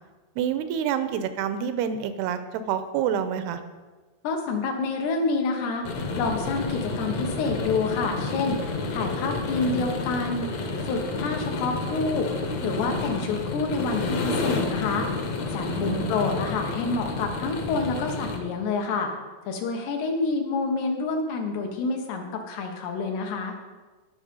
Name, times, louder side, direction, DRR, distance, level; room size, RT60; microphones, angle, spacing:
voice 1, 0.4-3.6 12.8-12.9 15.7-16.1, right 8 dB, 85° right, 10 dB, 2.7 m, -28 dB
voice 2, 4.2-5.9 6.2-12.3 12.6-15.1 15.5-19.1 19.5-23.6, left 4 dB, 80° left, 3 dB, 3.5 m, -28 dB
sound 1, 5.8-18.4, left 3 dB, 60° left, 2.0 m, -30 dB
18.5 x 6.7 x 5.4 m, 1.3 s
omnidirectional pair, 4.7 m